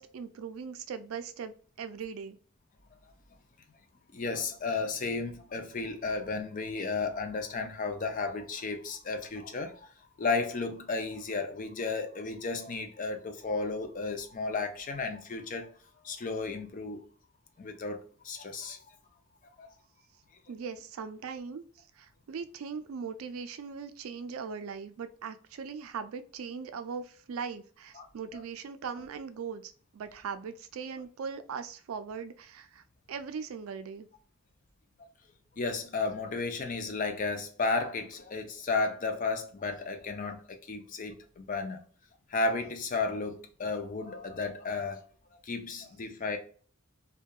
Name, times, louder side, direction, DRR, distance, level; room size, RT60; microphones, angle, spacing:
voice 1, 0.0-2.4 20.5-21.6 22.0-34.1, right 6 dB, 85° right, 0.4 m, -40 dB
voice 2, 4.1-9.9 10.2-15.7 16.0-17.1 17.6-18.9 19.6-19.7 27.9-28.1 28.3-28.4 35.6-41.8 42.3-45.1 45.4-46.4, left 3 dB, 40° left, 0.4 m, -33 dB
2.7 x 2.2 x 2.2 m
head